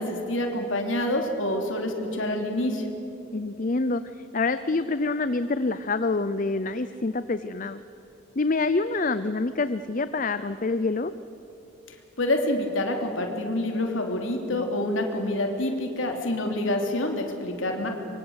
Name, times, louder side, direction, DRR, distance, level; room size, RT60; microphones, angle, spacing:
voice 1, 0.0-2.9 12.2-17.9, left 1 dB, 80° left, 3 dB, 3.4 m, -27 dB
voice 2, 3.3-7.8 8.4-11.1, left 3 dB, 40° left, 12 dB, 0.6 m, -26 dB
25.0 x 24.0 x 8.1 m, 3.0 s
head